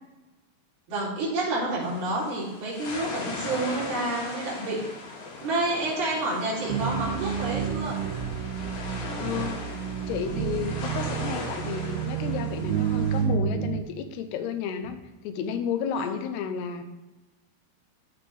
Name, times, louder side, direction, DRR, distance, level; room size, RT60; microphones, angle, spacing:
voice 1, 0.9-4.8 5.4-8.0 15.9-16.2, right 2 dB, 65° right, -7 dB, 5.2 m, -29 dB
sound 1, 1.8-13.2, left 3 dB, 55° left, 2.8 m, -38 dB
sound 2, 6.7-13.8, right 9 dB, 85° right, 2.6 m, -30 dB
voice 2, 9.2-9.6 10.1-16.8, left 7 dB, 85° left, 8 dB, 2.7 m, -32 dB
14.5 x 5.0 x 3.4 m, 1.1 s
omnidirectional pair, 4.8 m